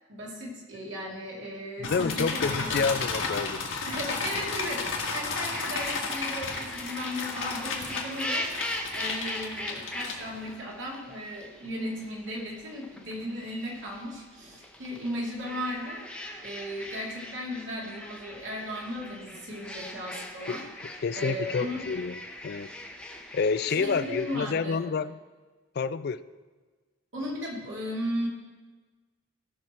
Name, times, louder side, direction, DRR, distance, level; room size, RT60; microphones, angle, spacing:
voice 1, 0.1-3.0 3.9-16.0 16.4-20.6 21.1-21.9 23.7-24.8 27.1-28.3, equal, 70° right, -2 dB, 2.6 m, -36 dB
sound 1, 1.8-10.6, left 4 dB, 75° left, 1.7 m, -33 dB
voice 2, 1.9-3.9 20.5-20.6 21.0-22.2 22.4-22.7 23.3-25.2 25.8-26.2, left 5 dB, 50° left, 15 dB, 0.4 m, -28 dB
sound 2, 5.5-24.4, left 1 dB, 5° left, 0.8 m, -40 dB
16.5 x 6.1 x 4.4 m, 1.4 s
head